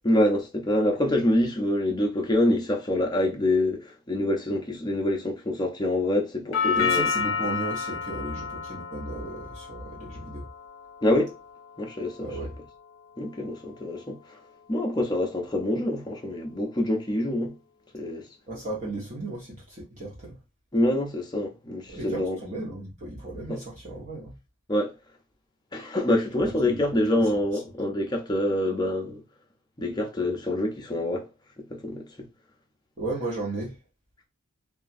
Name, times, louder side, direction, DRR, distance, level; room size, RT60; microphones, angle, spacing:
voice 1, 0.0-7.1 11.0-11.3 11.8-12.3 13.2-14.4 14.7-17.6 17.9-18.2 20.7-22.4 23.5-23.6 24.7-24.9 25.7-29.2 29.8-31.3 31.7-32.3, left 1 dB, 20° left, 0.5 m, -26 dB
Doorbell, 6.5-14.6, left 5 dB, 70° left, 0.6 m, -32 dB
voice 2, 6.7-10.5 12.2-12.5 18.5-20.4 21.9-24.3 26.3-27.2 33.0-33.7, right 2 dB, 40° right, 0.8 m, -35 dB
2.9 x 2.3 x 2.5 m
head